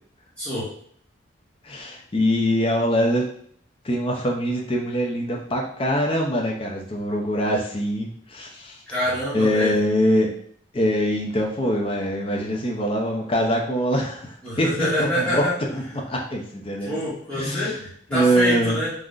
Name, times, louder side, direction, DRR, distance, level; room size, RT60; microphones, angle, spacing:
voice 1, 0.4-0.7 8.9-9.8 14.4-15.5 16.8-18.9, equal, 5° left, -12 dB, 0.8 m, -26 dB
voice 2, 1.6-3.3 3.8-8.8 9.3-10.3 10.7-14.9 15.2-15.4 15.7-16.9 17.3-17.7 18.1-18.8, equal, 30° left, 0 dB, 0.4 m, -23 dB
3.5 x 2.0 x 2.4 m, 0.62 s
head